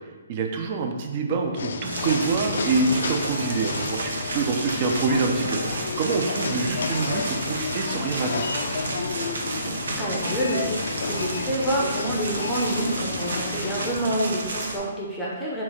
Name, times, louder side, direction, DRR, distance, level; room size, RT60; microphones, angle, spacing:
voice 1, 0.3-8.4, right 4 dB, 40° right, 4 dB, 0.5 m, -26 dB
sound 1, 1.5-13.9, left 4 dB, 65° left, 0.3 m, -31 dB
sound 2, 1.8-14.8, right 2 dB, 80° right, 0.7 m, -32 dB
voice 2, 10.0-10.6 11.1-15.6, right 1 dB, 5° left, -6 dB, 0.6 m, -27 dB
4.5 x 2.4 x 4.3 m, 1.2 s
hypercardioid pair, 150°, 0 cm